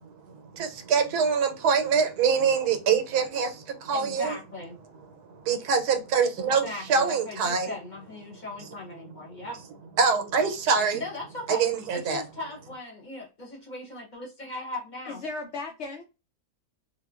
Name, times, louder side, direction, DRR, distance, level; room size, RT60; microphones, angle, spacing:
voice 1, 0.3-4.4 5.4-7.7 10.0-11.0 11.5-12.2, right 6 dB, 85° right, 1.2 m, -24 dB
voice 2, 3.9-4.8 6.4-9.6 10.9-11.7 11.9-15.2, left 2 dB, 35° left, 0.9 m, -38 dB
voice 3, 15.1-16.0, left 3 dB, 70° left, 0.7 m, -35 dB
3.7 x 2.2 x 2.3 m
omnidirectional pair, 1.6 m